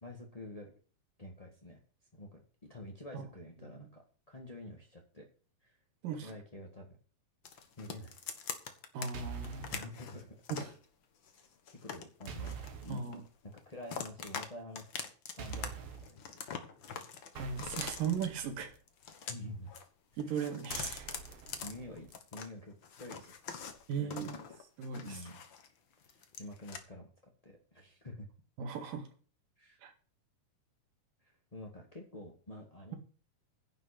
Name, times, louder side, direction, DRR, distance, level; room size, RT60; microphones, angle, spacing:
voice 1, 0.0-0.7 1.2-1.8 2.1-5.3 5.6-5.8 6.1-7.0 7.8-8.2 9.7-10.4 11.3-11.4 11.8-13.1 13.6-16.5 19.3-19.7 20.3-20.5 21.6-23.4 24.0-24.3 25.0-25.4 26.1-28.3 29.6-29.8 31.2-32.9, left 1 dB, 25° left, 0 dB, 0.8 m, -48 dB
sound 1, 7.4-9.1 9.4-10.8 11.3-13.3 13.6-14.5 14.7-15.7 15.9-18.2 18.9-19.8 20.1-22.5 22.8-25.7 26.0-26.8, left 7 dB, 50° left, 1.5 m, -44 dB
voice 2, 8.9-9.7 10.5-10.7 12.9-13.2 17.4-18.7 20.2-21.1 23.9-24.3 24.8-25.2 28.6-29.1 29.8-29.9, right 6 dB, 85° right, 6 dB, 3.6 m, -37 dB
sound 2, 9.1-9.8 12.3-13.0 15.4-16.1 17.3-18.8 20.7-22.1, right 6 dB, 55° right, 2.5 m, -45 dB
11.0 x 5.8 x 8.5 m, 0.40 s
omnidirectional pair, 3.8 m